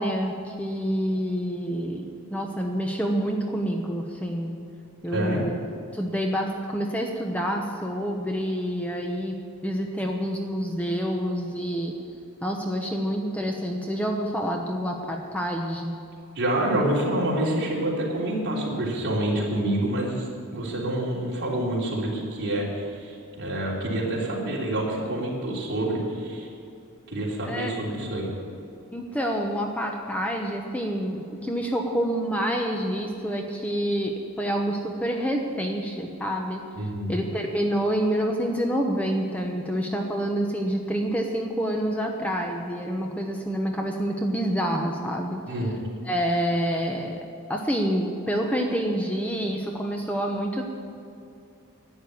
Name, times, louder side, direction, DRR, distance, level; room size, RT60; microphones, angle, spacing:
voice 1, 0.0-4.6 5.0-5.5 5.9-11.9 12.4-16.0 27.4-27.7 28.9-36.6 37.1-45.4 46.0-47.2 47.5-50.7, equal, 5° left, 1 dB, 0.9 m, -27 dB
voice 2, 5.1-5.4 16.3-26.5 27.1-28.3 36.8-37.2 45.4-45.7, right 1 dB, 50° right, -4 dB, 3.3 m, -27 dB
11.5 x 8.8 x 9.5 m, 2.5 s
head